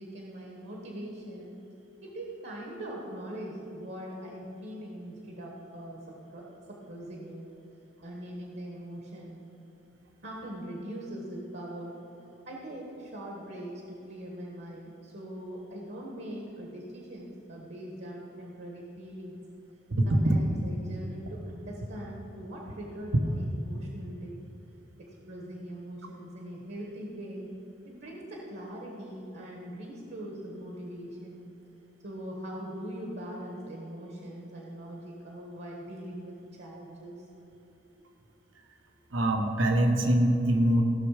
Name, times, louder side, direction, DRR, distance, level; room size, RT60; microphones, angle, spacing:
voice 1, 0.0-1.6 2.0-7.5 8.0-9.4 10.2-12.0 12.4-19.4 20.0-24.4 25.0-27.5 27.8-31.4 32.0-37.3, right 1 dB, 60° right, -2 dB, 1.4 m, -41 dB
voice 2, 19.9-20.4 39.1-40.8, right 1 dB, 80° right, 4 dB, 1.1 m, -23 dB
16.0 x 6.4 x 5.0 m, 3.0 s
head